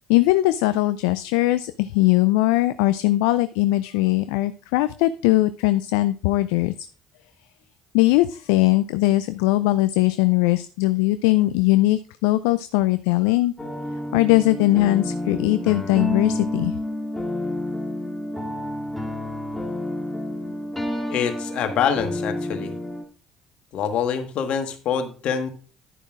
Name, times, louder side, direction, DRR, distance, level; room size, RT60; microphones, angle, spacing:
voice 1, 0.1-6.9 7.9-13.5 14.1-16.8, left 18 dB, 75° left, 13 dB, 0.4 m, -20 dB
sound 1, 13.6-23.0, left 1 dB, 5° left, 2.0 m, -29 dB
voice 2, 21.1-22.7 23.7-25.5, left 7 dB, 60° left, 7 dB, 1.5 m, -25 dB
11.0 x 9.8 x 2.4 m, 0.37 s
hypercardioid pair, 55°, 2 cm